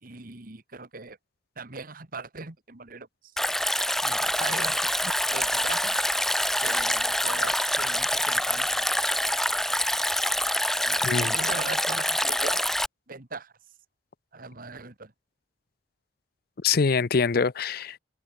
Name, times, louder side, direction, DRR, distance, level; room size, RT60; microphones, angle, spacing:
voice 1, 0.0-1.2 1.6-3.3 4.0-6.0 6.6-9.1 10.9-12.6 13.1-13.5 14.3-15.1, right 3 dB, 50° right, 1.9 m, -40 dB
Stream, 3.4-12.9, left 1 dB, ahead, 1.7 m, -26 dB
voice 2, 11.0-11.3 16.6-18.0, left 5 dB, 55° left, 0.6 m, -24 dB
head